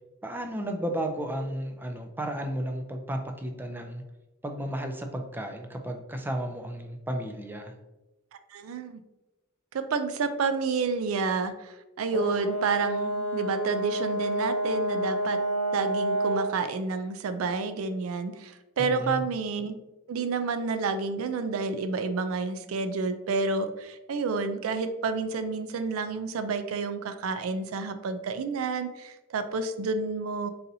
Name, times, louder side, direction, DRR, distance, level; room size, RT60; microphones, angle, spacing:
voice 1, 0.2-4.0 4.4-7.7 18.8-19.2, right 1 dB, 10° right, 5 dB, 0.3 m, -33 dB
voice 2, 8.5-9.0 9.7-15.4 15.7-19.7 20.1-30.5, right 4 dB, 80° right, 10 dB, 0.4 m, -29 dB
Brass instrument, 12.1-16.6, right 1 dB, 90° left, 0.6 m, -29 dB
4.0 x 4.0 x 2.6 m, 1.0 s
head